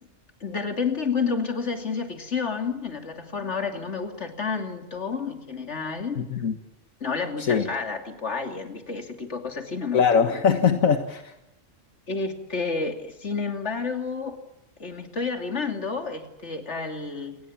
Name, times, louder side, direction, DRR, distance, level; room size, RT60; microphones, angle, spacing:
voice 1, 0.4-6.2 7.0-10.0 12.1-14.4 14.8-17.4, left 5 dB, 55° left, 5 dB, 3.1 m, -30 dB
voice 2, 6.2-6.5 7.4-7.7 9.9-11.3, left 6 dB, 80° left, 7 dB, 1.9 m, -22 dB
28.5 x 20.5 x 7.4 m, 0.91 s
omnidirectional pair, 1.4 m